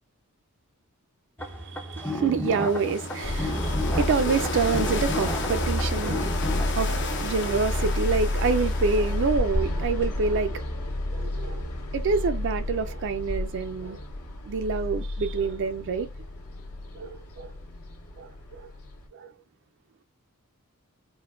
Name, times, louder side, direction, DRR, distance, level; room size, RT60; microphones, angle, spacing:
sound 1, 1.4-6.6, left 1 dB, 10° left, 0.4 m, -33 dB
voice 1, 1.4-10.6 11.1-14.0 14.4-16.1 16.9-17.5 18.2-18.7 19.1-19.3, right 4 dB, 55° right, 0.4 m, -27 dB
sound 2, 2.4-9.5, left 3 dB, 55° left, 0.6 m, -34 dB
sound 3, 3.2-19.1, left 1 dB, 80° left, 1.8 m, -30 dB
4.4 x 2.1 x 2.3 m
head